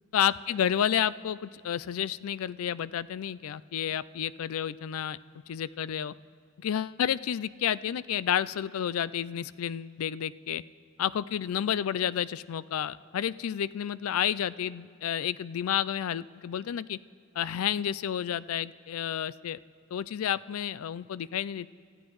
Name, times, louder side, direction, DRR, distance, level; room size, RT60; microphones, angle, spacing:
voice 1, 0.1-5.2 5.5-6.1 6.6-10.6 11.0-17.0 17.4-19.6 19.9-21.7, left 9 dB, 85° left, 18 dB, 0.4 m, -30 dB
29.5 x 14.5 x 3.1 m, 2.3 s
head